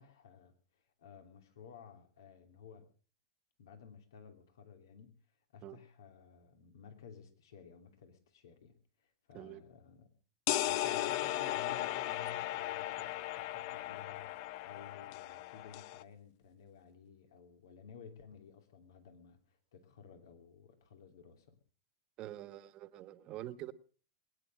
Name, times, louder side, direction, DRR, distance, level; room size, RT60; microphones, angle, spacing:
voice 1, 0.0-2.9 3.6-5.2 5.5-10.1 10.6-21.6, left 6 dB, 80° left, 7 dB, 2.8 m, -55 dB
sound 1, 10.5-16.0, left 14 dB, 60° left, 0.7 m, -36 dB
voice 2, 22.2-23.7, right 14 dB, 45° right, 13 dB, 1.4 m, -46 dB
21.5 x 10.0 x 6.4 m, 0.41 s
hypercardioid pair, 115°, 2 cm